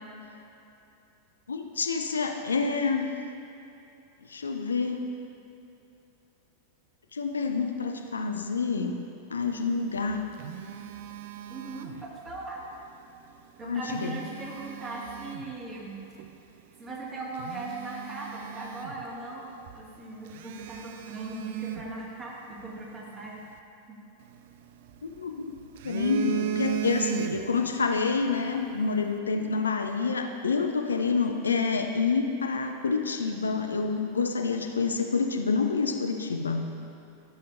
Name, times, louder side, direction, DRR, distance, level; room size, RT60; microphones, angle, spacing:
voice 1, 1.5-3.1 4.2-5.0 7.1-9.0 9.3-10.3 13.6-14.2 25.0-25.5 25.8-36.7, left 4 dB, 75° left, 4 dB, 0.5 m, -28 dB
Telephone, 9.8-12.4 13.7-15.6 16.2-16.4 16.9-17.0 17.3-19.4 19.7-19.8 20.3-22.7 24.2-25.2 25.6-27.7 28.0-28.2, right 11 dB, 55° right, 0.4 m, -36 dB
voice 2, 11.5-12.6 13.6-16.0 16.8-23.4 23.9-24.0, right 2 dB, 20° right, -4 dB, 1.9 m, -39 dB
14.0 x 6.7 x 2.6 m, 2.8 s
figure-of-eight pair, 90°, 0 cm